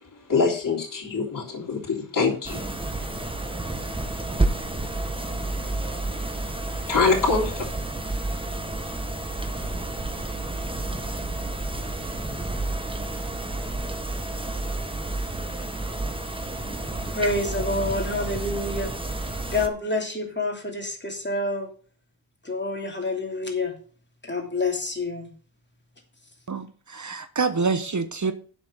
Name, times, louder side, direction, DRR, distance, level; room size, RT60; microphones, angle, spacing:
voice 1, 0.3-2.7 5.9-6.2 6.7-7.7, left 4 dB, 45° left, 3.4 m, -25 dB
sound 1, 2.4-19.7, right 2 dB, 10° right, 1.4 m, -30 dB
voice 2, 17.1-18.9 19.5-21.7 22.4-23.7 24.2-25.3, left 2 dB, 25° left, 2.8 m, -28 dB
voice 3, 26.5-28.3, right 4 dB, 40° right, 1.0 m, -26 dB
7.8 x 6.0 x 7.5 m
cardioid pair, 80°, 47 cm